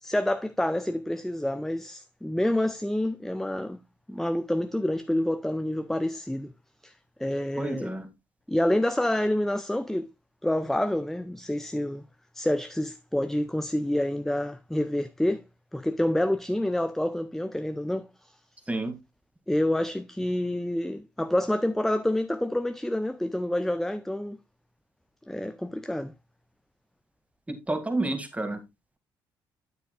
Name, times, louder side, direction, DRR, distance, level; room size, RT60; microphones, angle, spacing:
voice 1, 0.0-3.8 4.1-6.5 6.8-6.9 7.2-7.9 8.5-10.1 10.4-12.0 12.3-15.4 15.7-18.1 19.5-24.4 25.3-26.1, left 1 dB, 5° left, 0.6 m, -28 dB
voice 2, 7.6-8.1 18.7-19.0 27.5-28.6, right 2 dB, 15° right, 2.1 m, -30 dB
9.2 x 8.7 x 2.3 m
figure-of-eight pair, 45°, 11 cm